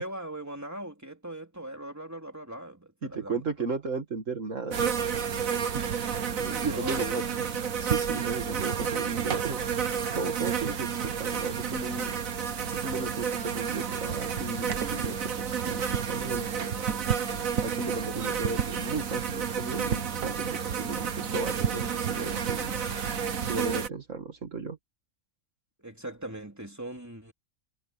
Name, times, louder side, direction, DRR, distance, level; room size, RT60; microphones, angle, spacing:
voice 1, 0.0-3.7 6.4-7.2 25.8-27.3, right 1 dB, 10° right, 3.4 m, -40 dB
voice 2, 3.0-4.9 5.7-5.8 6.4-7.2 7.8-9.6 10.1-12.1 12.7-16.5 17.6-22.8 23.5-24.8, right 4 dB, 65° right, 2.3 m, -35 dB
sound 1, 4.7-23.9, right 7 dB, 85° right, 1.7 m, -30 dB
omnidirectional pair, 1.4 m